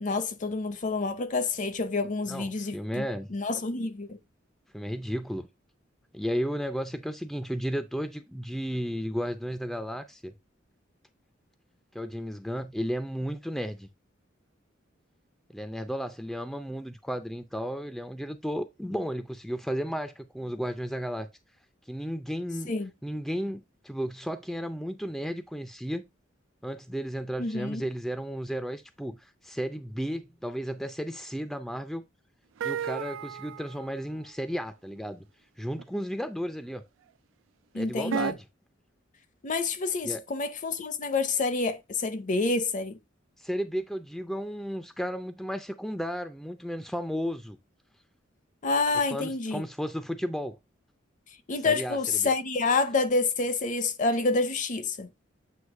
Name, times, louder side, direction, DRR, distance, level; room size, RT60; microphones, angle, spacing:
voice 1, 0.0-4.2 22.7-22.9 27.4-27.8 37.7-38.4 39.4-43.0 48.6-49.6 51.5-55.1, left 3 dB, 40° left, 0.7 m, -28 dB
voice 2, 2.3-3.3 4.7-5.5 6.1-10.3 11.9-13.9 15.5-21.3 21.9-22.7 23.0-26.0 26.6-32.1 32.6-35.3 35.6-36.8 37.7-38.4 40.0-40.2 43.4-47.6 49.1-50.6 51.6-52.3, equal, ahead, 0.4 m, -33 dB
sound 1, 32.6-33.8 35.8-35.9 38.1-38.3, right 7 dB, 75° right, 0.4 m, -32 dB
8.0 x 2.8 x 4.7 m
head